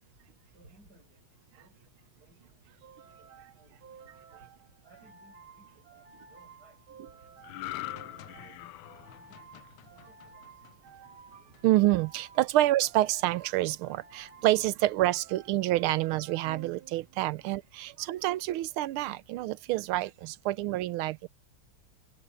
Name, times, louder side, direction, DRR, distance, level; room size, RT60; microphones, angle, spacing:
voice 1, 0.5-1.9 2.2-4.5 4.8-7.4 8.0-9.6 9.9-10.6, right 2 dB, 45° right, 8.5 m, -63 dB
sound 1, 2.8-17.4, right 6 dB, 70° right, 2.8 m, -54 dB
sound 2, 7.4-10.9 11.3-11.6, left 15 dB, 75° left, 1.3 m, -42 dB
voice 2, 11.6-21.3, right 16 dB, 90° right, 1.5 m, -27 dB
omnidirectional pair, 2.3 m